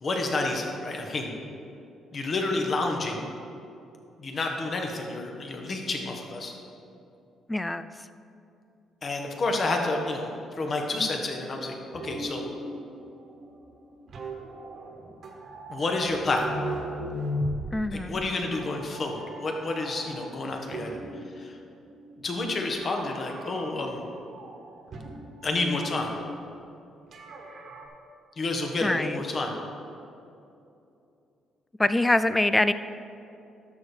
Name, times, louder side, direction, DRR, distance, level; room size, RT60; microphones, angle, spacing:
voice 1, 0.0-1.3 2.1-3.3 4.2-6.5 9.0-10.3 10.6-12.5 15.7-16.5 17.9-21.0 21.4-21.6 22.2-24.0 25.4-26.1 28.4-29.6, left 2 dB, 40° left, 2 dB, 1.5 m, -29 dB
voice 2, 7.5-7.9 17.7-18.2 28.8-29.2 31.8-32.7, left 2 dB, 10° left, 13 dB, 0.4 m, -24 dB
sound 1, 11.9-21.3 21.7-22.5 22.8-24.0 24.3-26.0 27.1-27.9, right 1 dB, 60° right, 1.6 m, -38 dB
12.0 x 6.8 x 4.5 m, 2.7 s
cardioid pair, 100°, 0 cm